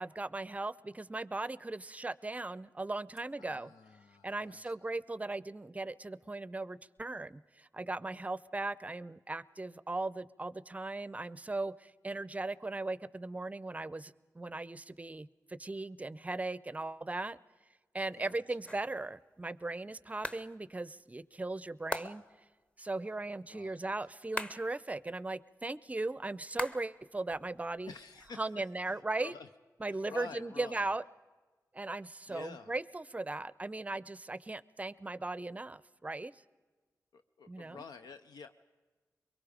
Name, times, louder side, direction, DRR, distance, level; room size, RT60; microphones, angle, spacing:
voice 1, 0.0-3.7 4.2-17.4 17.9-22.2 22.8-27.9 28.4-29.3 29.8-31.0 31.7-36.3 37.5-37.8, right 2 dB, 20° right, 19 dB, 0.5 m, -38 dB
voice 2, 3.4-4.8 18.1-18.4 23.5-24.0 27.9-29.5 29.9-31.0 32.3-32.7 37.1-38.5, left 5 dB, 85° left, 8 dB, 0.6 m, -50 dB
sound 1, 18.7-19.1 20.2-20.5 21.9-22.4 24.4-24.8 26.6-27.1 27.3-28.3, left 1 dB, 15° left, 0.9 m, -41 dB
23.5 x 22.5 x 5.0 m, 1.3 s
cardioid pair, 70°, 7 cm